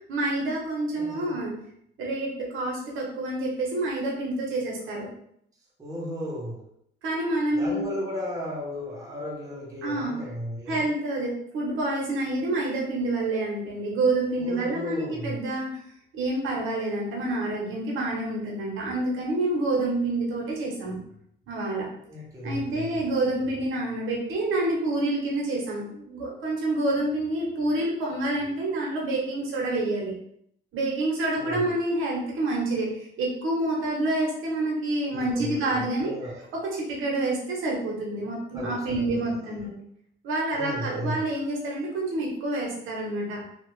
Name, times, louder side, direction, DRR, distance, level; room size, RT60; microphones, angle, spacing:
voice 1, 0.1-1.5 2.0-5.1 7.0-7.9 9.8-10.2 10.7-15.8 16.1-21.0 21.5-21.9 22.4-30.1 30.7-36.1 36.5-39.8 40.2-43.4, right 2 dB, 80° right, -2 dB, 1.0 m, -28 dB
voice 2, 0.9-1.4 5.8-6.6 7.5-10.9 14.4-15.4 22.1-23.0 31.4-31.7 35.1-36.4 38.5-39.6 40.5-41.3, equal, 15° right, -5 dB, 0.8 m, -35 dB
2.8 x 2.4 x 3.1 m, 0.71 s
cardioid pair, 150°, 21 cm